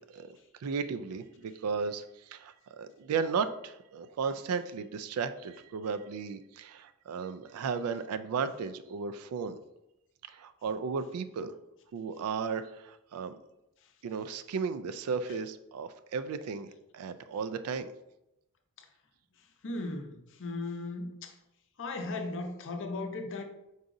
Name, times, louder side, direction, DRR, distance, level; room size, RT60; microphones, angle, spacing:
voice 1, 0.6-9.6 10.3-11.5 11.9-13.4 14.0-17.9, right 5 dB, 75° right, 11 dB, 0.3 m, -35 dB
voice 2, 19.6-21.3 21.8-23.4, left 2 dB, 60° left, 4 dB, 0.6 m, -37 dB
4.8 x 3.9 x 2.6 m, 0.88 s
head